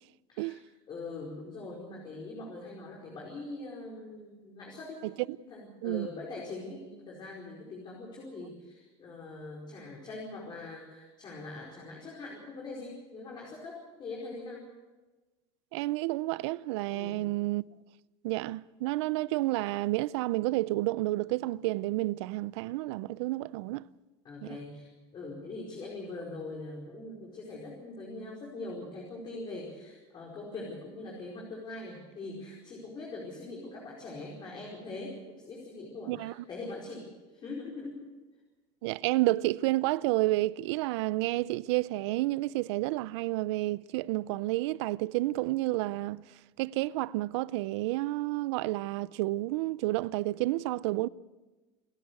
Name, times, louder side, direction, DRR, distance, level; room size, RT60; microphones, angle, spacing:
voice 1, 0.9-5.0 5.5-14.6 16.9-17.3 24.2-38.0, left 2 dB, 35° left, 4.9 m, -42 dB
voice 2, 15.7-17.6 18.2-23.8 24.4-24.6 36.1-36.3 38.8-46.2 46.6-51.1, right 18 dB, 85° right, 0.5 m, -30 dB
28.0 x 11.5 x 8.3 m
supercardioid pair, 135°, 14 cm